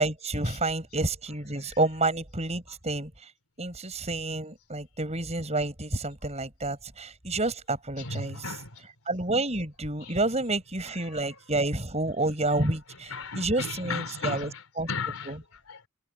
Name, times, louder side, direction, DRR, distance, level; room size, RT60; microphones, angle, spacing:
voice 1, 0.0-3.1 3.6-8.5 9.1-14.5 14.8-14.9 15.2-15.4, right 2 dB, 30° right, 6.7 m, -29 dB
voice 2, 8.0-8.8 10.0-10.2 11.0-11.4 12.5-15.9, left 4 dB, 85° left, 4.1 m, -37 dB
head